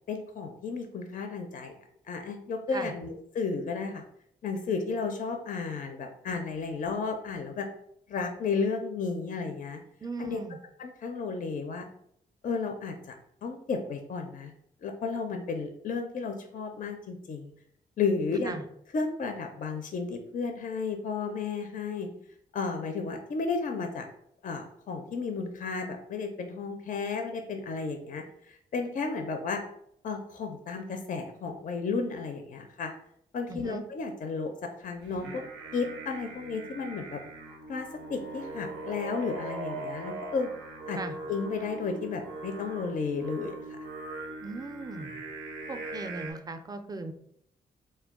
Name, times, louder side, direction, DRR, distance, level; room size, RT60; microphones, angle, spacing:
voice 1, 0.1-1.7 2.1-4.0 4.4-7.7 8.1-9.8 10.2-10.4 10.8-11.9 12.4-13.2 13.4-14.5 14.8-17.5 18.0-18.6 18.9-22.1 22.5-24.0 24.4-29.6 30.0-32.9 33.3-34.5 34.8-35.4 35.7-37.2 37.7-40.5 40.9-41.0 41.3-43.8, left 4 dB, 45° left, 5 dB, 0.4 m, -33 dB
voice 2, 10.0-10.6 18.4-18.6 33.5-33.8 40.9-41.2 44.4-45.2 45.7-47.1, right 3 dB, 20° right, 7 dB, 0.4 m, -38 dB
Singing, 35.0-46.3, right 2 dB, 85° right, 0.5 m, -41 dB
2.2 x 2.2 x 3.5 m, 0.71 s
hypercardioid pair, 40°, 20 cm